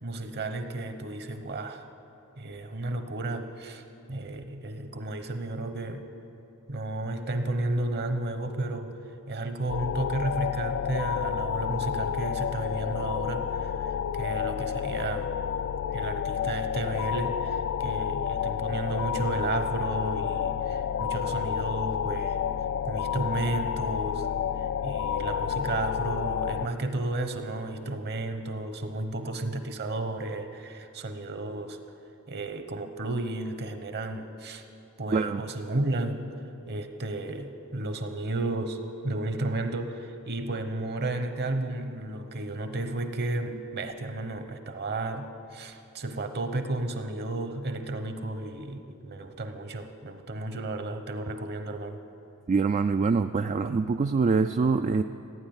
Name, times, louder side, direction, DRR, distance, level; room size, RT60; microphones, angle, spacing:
voice 1, 0.0-1.9 2.4-3.8 4.1-6.1 6.7-9.0 9.3-15.4 15.9-22.4 22.8-24.3 24.6-31.8 32.3-34.6 35.0-36.2 36.6-52.0, right 2 dB, 50° right, 8 dB, 1.0 m, -33 dB
sound 1, 9.7-26.7, left 8 dB, 55° left, 0.3 m, -30 dB
voice 2, 35.1-35.4 52.5-55.0, right 4 dB, 30° right, 8 dB, 0.3 m, -24 dB
15.5 x 9.8 x 8.8 m, 2.9 s
head